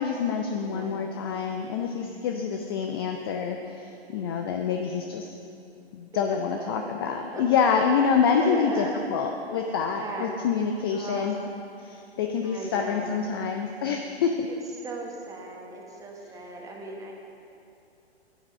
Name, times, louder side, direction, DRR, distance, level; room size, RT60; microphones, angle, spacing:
voice 1, 0.0-5.4 5.9-11.4 11.8-14.5, left 6 dB, 25° left, 4 dB, 0.4 m, -27 dB
voice 2, 0.6-1.1 4.1-4.3 6.1-6.9 7.2-7.5 8.2-9.1 9.9-10.3 10.9-11.3 12.4-13.2 14.5-14.6 14.8-17.2, right 3 dB, 10° right, -1 dB, 1.3 m, -38 dB
9.9 x 8.9 x 6.4 m, 2.6 s
hypercardioid pair, 130°, 33 cm